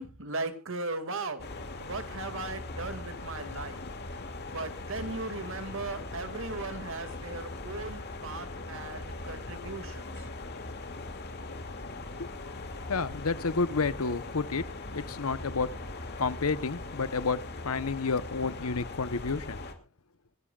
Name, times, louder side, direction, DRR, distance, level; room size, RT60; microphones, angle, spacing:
voice 1, 0.0-1.5 1.8-3.8 4.5-10.0, right 3 dB, 65° right, 9 dB, 2.2 m, -37 dB
sound 1, 1.4-19.7, left 2 dB, 50° left, 2.4 m, -40 dB
voice 2, 12.9-15.7 16.2-19.6, left 4 dB, 90° left, 16 dB, 0.9 m, -30 dB
26.5 x 11.5 x 2.4 m, 0.32 s
head